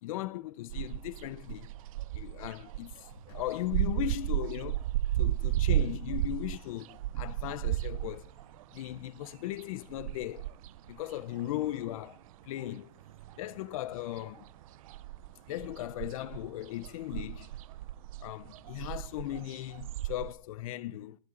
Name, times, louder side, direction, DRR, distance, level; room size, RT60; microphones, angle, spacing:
voice 1, 0.0-1.7 2.1-4.9 5.2-8.3 8.7-10.5 10.9-12.2 12.4-13.0 13.4-14.4 15.5-17.5 18.2-21.2, left 14 dB, 55° left, 0.6 m, -37 dB
sound 1, 0.7-12.3 12.6-13.9 14.2-20.3, right 14 dB, 55° right, 0.5 m, -34 dB
sound 2, 2.5-4.0 5.5-6.3 8.1-8.2 8.6-9.5 9.8-10.1 13.2-14.3 14.6-14.7 16.5-17.5, left 2 dB, 70° left, 7.8 m, -60 dB
21.5 x 8.4 x 3.8 m
supercardioid pair, 165°, 21 cm